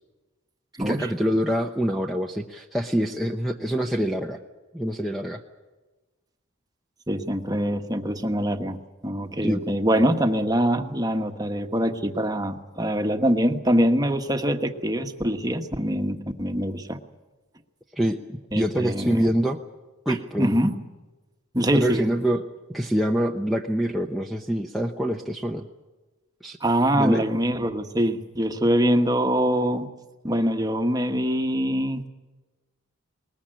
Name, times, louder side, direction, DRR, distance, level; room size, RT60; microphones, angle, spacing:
voice 1, 0.8-4.4 4.7-5.4 9.4-9.6 17.9-19.6 20.1-20.5 21.7-22.4 22.7-25.7 26.4-26.6 26.9-27.3, equal, ahead, 3 dB, 0.8 m, -25 dB
voice 2, 7.1-17.0 18.5-19.3 20.1-20.8 21.5-22.0 26.6-29.9 30.2-32.1, equal, 15° right, 6 dB, 1.3 m, -24 dB
21.0 x 20.0 x 8.9 m, 1.2 s
head